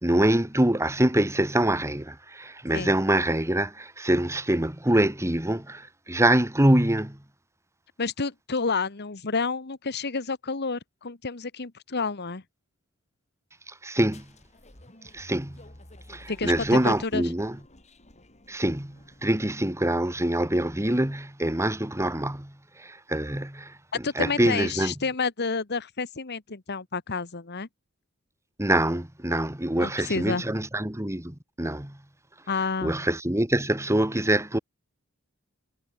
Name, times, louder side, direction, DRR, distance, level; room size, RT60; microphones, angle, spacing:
voice 1, 0.0-7.2 13.7-14.3 15.1-15.6 16.1-17.6 18.5-23.8 24.2-24.9 28.6-32.0 32.8-34.6, right 1 dB, 15° right, 2.0 m, -25 dB
voice 2, 8.0-12.4 16.3-17.2 24.0-27.7 29.8-30.4 32.5-32.9, left 4 dB, 50° left, 1.4 m, -29 dB
sound 1, 14.1-19.6, left 1 dB, 35° left, 6.2 m, -52 dB
head